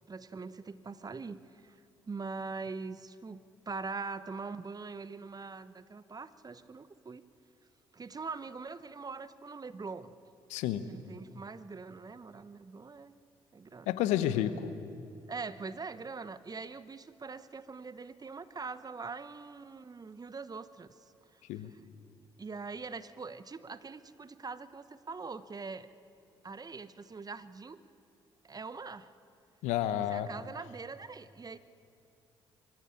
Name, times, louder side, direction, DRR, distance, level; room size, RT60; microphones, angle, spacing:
voice 1, 0.1-1.8 2.1-7.2 7.9-10.1 10.9-13.1 13.5-14.0 15.3-21.0 21.7-21.8 22.4-25.9 26.4-27.8 28.4-29.1 30.1-31.6, right 4 dB, 30° right, 15 dB, 1.0 m, -43 dB
voice 2, 10.5-10.8 13.9-14.7 21.5-21.7 29.6-30.3, left 12 dB, 75° left, 13 dB, 0.9 m, -30 dB
23.5 x 15.0 x 8.7 m, 2.6 s
hypercardioid pair, 50°, 12 cm